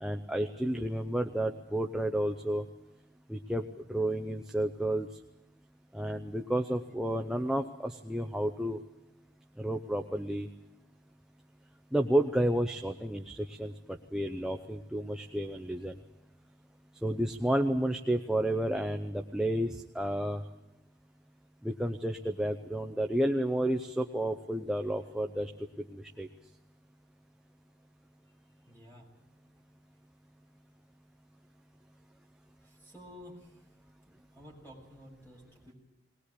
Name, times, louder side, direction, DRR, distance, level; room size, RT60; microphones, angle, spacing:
voice 1, 0.0-2.7 3.3-3.6 3.9-5.1 5.9-8.8 9.6-10.5 11.9-16.0 17.0-20.4 21.6-25.5 25.9-26.3, right 1 dB, 5° right, 4 dB, 0.7 m, -31 dB
voice 2, 28.6-29.1 32.6-33.6 34.1-35.7, equal, 15° left, -1 dB, 6.4 m, -52 dB
20.5 x 20.0 x 8.4 m, 0.91 s
head